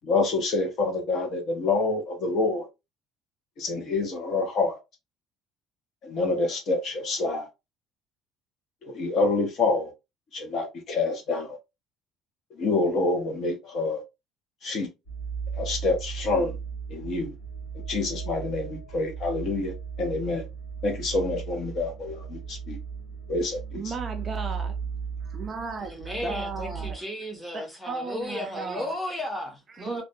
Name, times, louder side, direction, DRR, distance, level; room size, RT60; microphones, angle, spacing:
voice 1, 0.0-2.7 3.6-4.8 6.0-7.5 8.8-9.9 10.3-11.6 12.5-14.0 14.6-14.9 15.5-16.6 16.9-17.3 17.9-20.5 20.8-22.8 23.3-23.9, left 3 dB, 40° left, 0.7 m, -27 dB
sound 1, 15.0-27.0, right 6 dB, 70° left, 1.1 m, -36 dB
voice 2, 23.7-24.8 25.2-27.0 27.5-28.9 29.7-30.0, right 4 dB, 25° right, 0.3 m, -35 dB
voice 3, 25.8-30.0, left 1 dB, 5° left, 0.7 m, -34 dB
2.5 x 2.1 x 2.5 m
cardioid pair, 165°, 0 cm